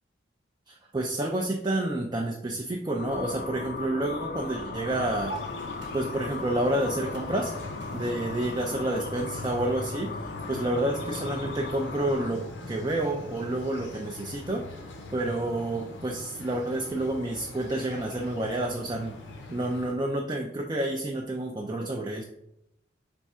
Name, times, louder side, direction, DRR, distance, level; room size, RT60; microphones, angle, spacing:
voice 1, 0.7-5.4 5.9-7.6 7.9-14.7 15.1-19.2 19.5-22.2, right 1 dB, 25° right, 1 dB, 0.4 m, -29 dB
sound 1, 3.0-12.3, left 4 dB, 50° left, 0.4 m, -37 dB
sound 2, 4.2-9.6, right 2 dB, 80° right, 1.0 m, -48 dB
sound 3, 4.9-19.9, left 2 dB, 85° left, 0.8 m, -42 dB
3.5 x 3.5 x 4.2 m, 0.80 s
head